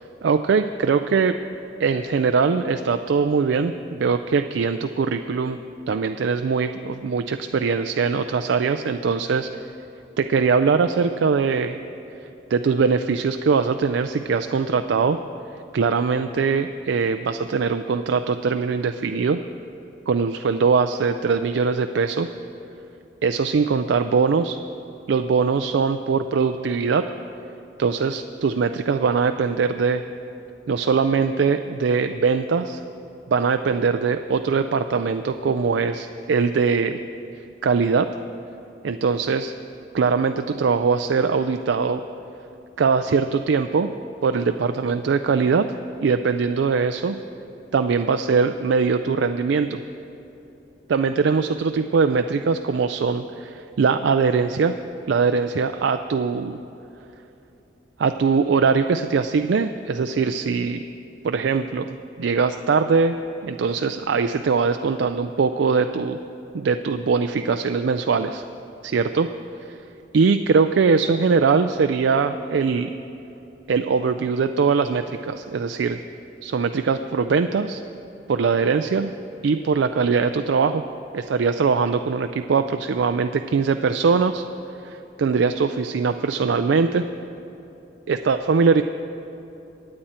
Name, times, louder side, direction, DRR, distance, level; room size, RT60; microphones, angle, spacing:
voice 1, 0.0-1.3 1.8-5.6 5.9-9.5 10.2-11.8 12.5-15.2 15.7-19.4 20.1-22.3 23.2-24.6 25.1-27.0 27.8-30.0 30.7-32.8 33.3-37.0 37.6-38.1 38.8-39.5 39.9-42.0 42.8-43.9 44.2-45.7 46.0-47.2 47.7-49.8 50.9-54.8 55.1-56.6 58.0-60.8 61.2-63.2 63.4-66.2 66.5-68.4 68.8-69.3 69.6-69.8 70.1-72.9 73.7-76.0 76.4-77.8 78.3-79.1 79.4-80.8 81.1-84.4 84.8-87.0 88.1-88.8, right 5 dB, 85° right, 8 dB, 0.4 m, -21 dB
23.5 x 8.8 x 4.3 m, 3.0 s
head